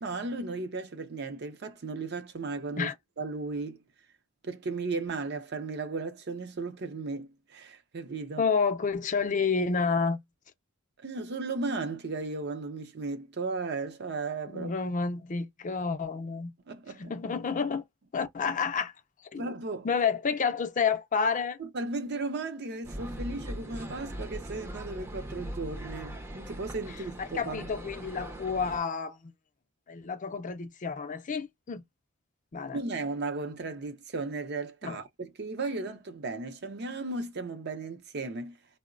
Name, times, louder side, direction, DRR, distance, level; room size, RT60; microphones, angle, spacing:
voice 1, 0.0-3.8 4.4-8.5 11.0-14.7 16.7-17.2 19.4-19.9 21.6-27.7 32.7-38.6, right 3 dB, 55° right, 0.6 m, -35 dB
voice 2, 8.4-10.2 14.5-16.5 17.0-17.8 18.1-18.9 19.3-19.5 19.8-21.6 27.3-29.3 29.9-31.8 32.5-32.8 34.8-35.0, left 5 dB, 40° left, 0.5 m, -29 dB
sound 1, 22.8-28.8, right 1 dB, 10° right, 0.5 m, -40 dB
3.7 x 2.1 x 2.4 m
head